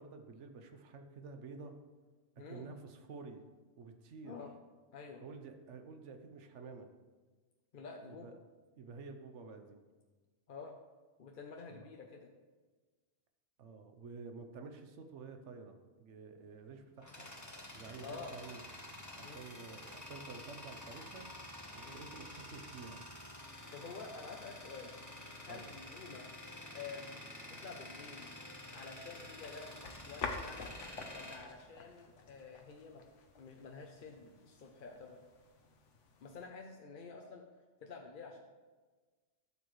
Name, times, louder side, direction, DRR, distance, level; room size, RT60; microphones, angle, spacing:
voice 1, 0.0-1.8 2.4-3.4 3.8-4.4 5.2-6.9 8.0-8.3 8.8-9.8 11.7-11.9 13.6-17.3 17.7-18.6 19.2-21.3 21.7-23.0 25.5-25.6, right 4 dB, 80° right, 6 dB, 1.1 m, -50 dB
voice 2, 2.4-2.7 4.2-4.5 4.9-5.2 7.7-8.3 10.5-10.8 11.2-12.3 18.0-18.3 19.2-19.4 21.8-22.0 23.7-24.9 25.4-26.3 26.7-28.3 28.7-29.7 30.0-30.7 31.1-33.0 33.4-35.2 36.2-37.5 37.8-38.4, left 4 dB, 50° left, 2 dB, 0.8 m, -49 dB
Tools, 16.5-32.4, left 1 dB, 15° left, 1.0 m, -50 dB
sound 1, 29.1-36.5, left 4 dB, 85° left, 1.3 m, -48 dB
12.5 x 7.0 x 3.1 m, 1.4 s
omnidirectional pair, 1.2 m